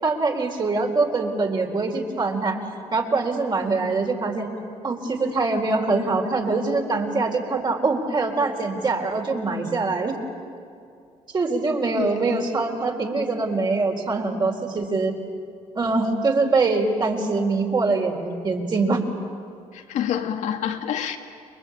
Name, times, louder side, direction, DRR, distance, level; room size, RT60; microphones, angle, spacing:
voice 1, 0.0-2.6 2.9-4.5 4.8-10.2 11.3-15.1 15.8-19.0, right 3 dB, 35° right, 2 dB, 4.2 m, -23 dB
voice 2, 12.0-12.4 19.7-21.2, left 9 dB, 85° left, 5 dB, 2.1 m, -27 dB
29.0 x 22.5 x 8.7 m, 2.4 s
cardioid pair, 100°, 12 cm